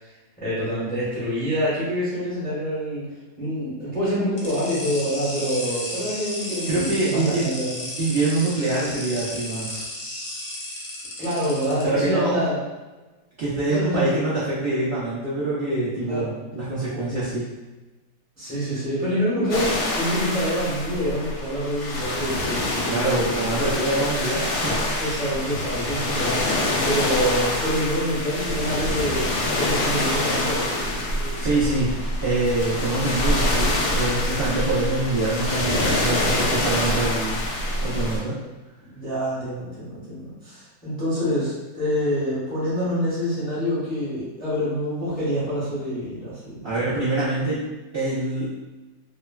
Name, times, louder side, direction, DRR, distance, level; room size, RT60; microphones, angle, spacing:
voice 1, 0.4-7.9 11.2-12.6 13.7-14.1 16.0-16.3 18.4-23.5 25.0-31.4 38.8-47.4, equal, 10° left, -10 dB, 0.6 m, -27 dB
sound 1, 4.4-11.8, left 1 dB, 60° left, 0.9 m, -34 dB
voice 2, 6.7-7.5 8.0-9.9 11.8-12.3 13.4-17.5 22.7-24.9 31.4-37.4 37.8-38.3 46.6-47.6 47.9-48.5, right 2 dB, 80° right, -12 dB, 0.5 m, -25 dB
sound 2, 19.5-38.2, left 1 dB, 75° left, 1.2 m, -25 dB
3.1 x 2.1 x 2.3 m, 1.1 s
omnidirectional pair, 1.9 m